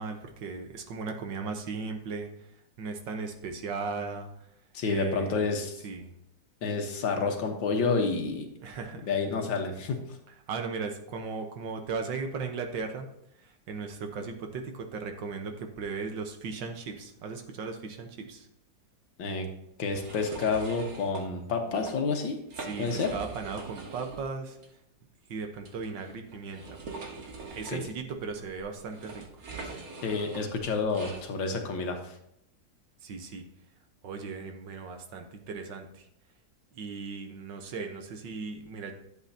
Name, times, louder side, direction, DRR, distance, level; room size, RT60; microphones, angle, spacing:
voice 1, 0.0-2.3 2.8-4.3 4.8-5.4 5.8-6.1 8.6-9.1 10.5-13.1 13.4-18.5 22.6-24.6 25.3-26.8 27.5-29.2 29.5-29.8 33.0-33.4 34.0-36.1 36.8-38.9, right 4 dB, 75° right, 5 dB, 1.8 m, -37 dB
voice 2, 4.7-5.8 6.6-8.5 9.0-10.2 19.2-19.5 19.8-22.4 22.8-23.1 27.7-27.8 30.0-32.2, left 4 dB, 85° left, 4 dB, 2.0 m, -29 dB
sound 1, 19.8-21.2 21.7-21.9 22.4-24.3 24.6-24.7 25.6-31.2, right 3 dB, 55° right, 1.7 m, -43 dB
11.0 x 7.9 x 2.8 m, 0.78 s
omnidirectional pair, 2.0 m